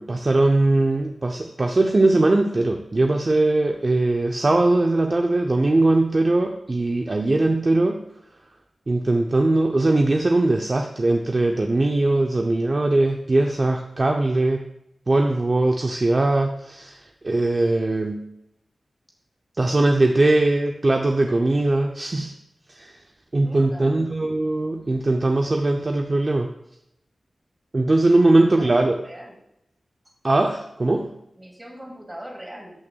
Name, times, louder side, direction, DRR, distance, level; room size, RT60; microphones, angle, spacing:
voice 1, 0.0-8.0 8.9-14.7 15.1-17.0 17.2-18.2 19.6-22.3 22.7-23.0 23.3-26.5 27.7-29.0 30.2-31.1, right 2 dB, 40° right, 3 dB, 0.5 m, -20 dB
voice 2, 23.4-24.0 27.9-29.4 31.4-32.7, equal, 15° right, -1 dB, 2.5 m, -41 dB
12.5 x 5.9 x 2.3 m, 0.81 s
wide cardioid pair, 85°, 0 cm